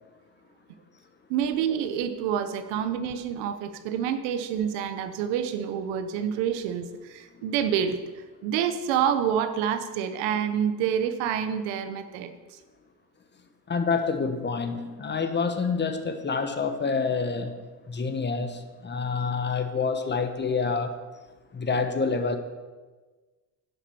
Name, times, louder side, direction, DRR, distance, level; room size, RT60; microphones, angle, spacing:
voice 1, 1.3-12.6, right 8 dB, 85° right, 9 dB, 1.2 m, -28 dB
voice 2, 13.7-17.6 17.9-20.9 21.5-22.4, left 4 dB, 25° left, 8 dB, 1.1 m, -27 dB
11.0 x 7.4 x 7.1 m, 1.3 s
cardioid pair, 110°, 42 cm